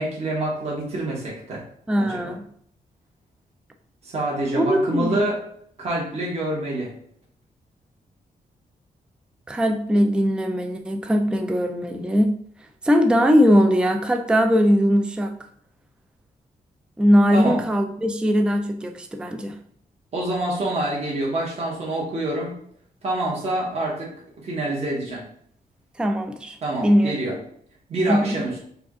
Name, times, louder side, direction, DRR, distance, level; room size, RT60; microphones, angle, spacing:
voice 1, 0.0-1.6 2.0-2.2 4.0-5.4 5.8-6.9 17.3-17.6 20.1-22.6 23.0-25.2 26.6-27.4 27.9-28.6, right 1 dB, 45° right, -4 dB, 1.4 m, -26 dB
voice 2, 1.9-2.4 4.5-5.2 9.5-12.3 12.8-15.3 17.0-19.6 26.0-27.1 28.1-28.4, equal, 5° right, 5 dB, 0.3 m, -20 dB
4.8 x 2.4 x 3.7 m, 0.63 s
wide cardioid pair, 150°, 15 cm